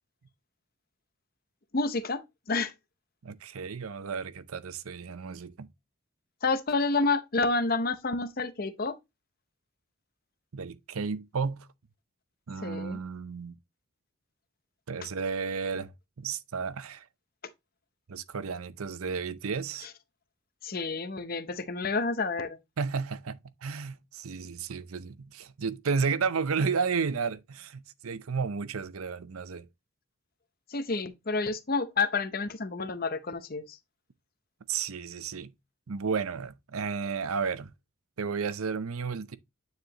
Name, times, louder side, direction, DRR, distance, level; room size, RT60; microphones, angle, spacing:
voice 1, 1.7-2.2 2.5-2.7 6.4-9.0 12.6-13.0 19.8-19.9 20.6-22.6 30.7-33.8, left 3 dB, 45° left, 0.7 m, -29 dB
voice 2, 3.2-5.7 10.5-11.7 12.5-13.5 14.9-15.9 16.2-17.0 18.1-19.9 22.8-29.7 34.7-35.5 35.9-37.7 38.2-39.4, right 5 dB, 90° right, 0.6 m, -32 dB
9.3 x 4.8 x 2.9 m
head